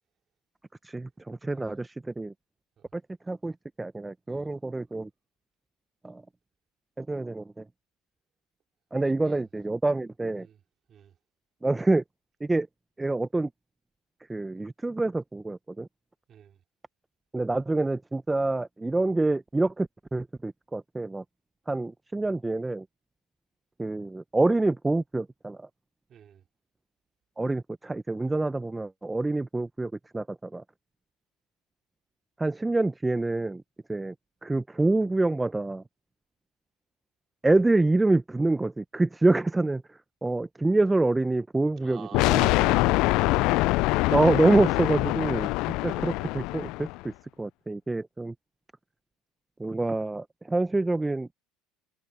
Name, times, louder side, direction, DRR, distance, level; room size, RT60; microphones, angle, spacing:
voice 1, 0.8-2.3 2.9-3.0 3.3-5.1 6.0-6.2 7.0-7.6 8.9-10.5 11.6-12.0 12.4-12.7 13.0-13.5 14.3-15.9 17.3-21.2 21.7-22.8 23.8-25.7 27.4-30.6 32.4-33.6 33.9-34.1 34.4-35.8 37.4-42.8 44.1-45.5 45.8-47.1 47.4-48.3 49.6-51.3, right 2 dB, 10° right, 0.8 m, -26 dB
voice 2, 9.0-9.4 10.4-10.6 10.9-11.2 16.3-16.6 26.1-26.4 41.8-43.7 45.2-45.9, right 9 dB, 40° right, 4.7 m, -50 dB
sound 1, 42.1-47.0, left 21 dB, 65° left, 0.3 m, -24 dB
hypercardioid pair, 85°, 0 cm